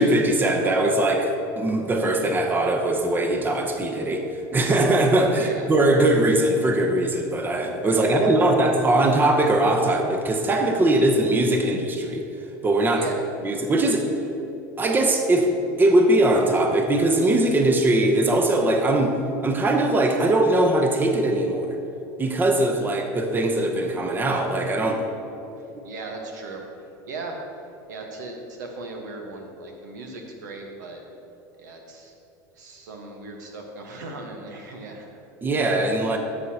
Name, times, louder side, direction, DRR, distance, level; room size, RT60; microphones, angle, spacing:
voice 1, 0.0-4.3 4.5-12.2 12.6-13.0 13.4-14.1 14.8-19.1 19.4-21.8 22.2-25.0 35.4-36.2, right 1 dB, 20° right, 4 dB, 0.8 m, -21 dB
voice 2, 5.3-5.7 7.9-8.5 12.9-13.2 25.8-26.6 27.0-27.4 27.9-31.0 31.6-32.1 32.5-35.2, right 3 dB, 85° right, 2 dB, 1.2 m, -37 dB
12.5 x 6.6 x 2.8 m, 2.9 s
supercardioid pair, 100°, 9 cm